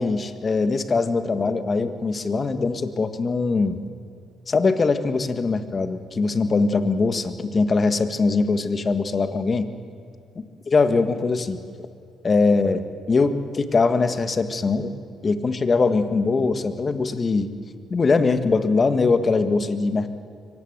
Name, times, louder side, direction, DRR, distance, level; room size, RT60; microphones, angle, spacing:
voice 1, 0.0-3.8 4.5-9.7 10.7-11.6 12.2-14.9 15.2-17.5 17.9-20.1, left 4 dB, 35° left, 10 dB, 1.6 m, -22 dB
24.0 x 18.5 x 8.1 m, 2.3 s
cardioid pair, 90°, 0 cm